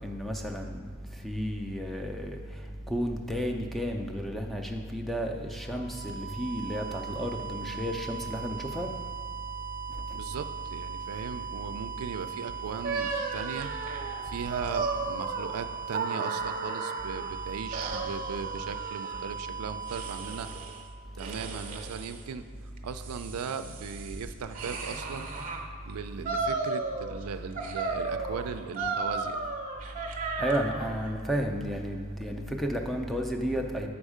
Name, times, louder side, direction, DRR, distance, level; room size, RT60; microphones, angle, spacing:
voice 1, 0.0-0.8 1.2-2.4 2.9-8.9 30.4-33.9, equal, ahead, 2 dB, 0.4 m, -32 dB
sound 1, 5.5-21.3, right 7 dB, 55° left, 1.8 m, -39 dB
voice 2, 10.1-13.7 14.2-20.5 21.2-22.5 22.8-25.3 25.9-29.4, right 6 dB, 85° right, 10 dB, 0.4 m, -38 dB
sound 2, 12.8-17.3 17.7-19.2 19.9-20.8 21.2-22.2 22.8-25.6 26.2-27.2 27.6-31.0, right 3 dB, 40° right, 0.7 m, -34 dB
7.2 x 5.3 x 4.9 m, 2.1 s
head